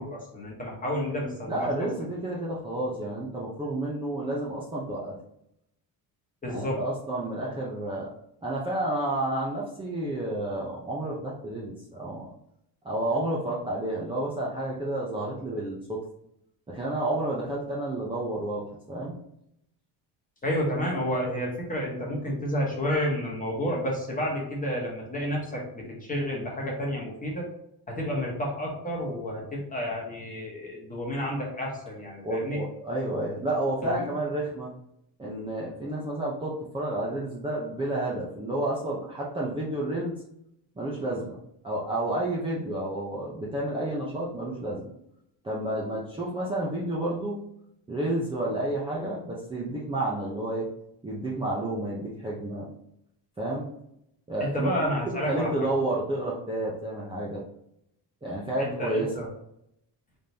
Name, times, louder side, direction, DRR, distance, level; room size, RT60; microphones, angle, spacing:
voice 1, 0.0-1.7 6.4-6.8 20.4-27.5 27.9-32.6 33.8-34.1 54.4-55.7 58.6-59.3, equal, 20° left, -2 dB, 1.2 m, -30 dB
voice 2, 1.5-5.2 6.5-8.1 8.4-12.3 12.8-16.0 16.7-19.1 32.2-34.7 35.2-40.1 40.8-41.4 41.6-44.9 45.4-47.4 47.9-50.7 51.0-52.6 53.4-53.7 54.3-57.4 58.2-59.1, right 1 dB, 10° right, -6 dB, 0.6 m, -30 dB
3.8 x 3.4 x 2.8 m, 0.78 s
cardioid pair, 140°, 45 cm